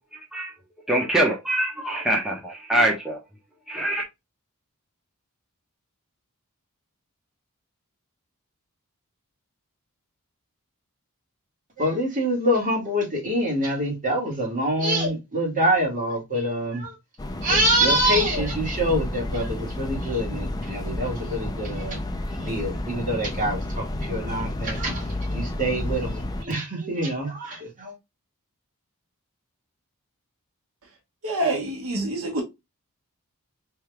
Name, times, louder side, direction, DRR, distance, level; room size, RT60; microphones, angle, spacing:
voice 1, 0.9-3.2 3.7-4.0, right 1 dB, ahead, 0.9 m, -24 dB
voice 2, 11.8-16.9 17.4-22.0 22.3-28.0, right 1 dB, 35° right, 1.9 m, -25 dB
sound 1, 17.2-26.4, left 1 dB, 15° left, 0.4 m, -31 dB
voice 3, 31.2-32.4, right 2 dB, 65° right, 1.3 m, -26 dB
4.4 x 3.4 x 2.3 m
head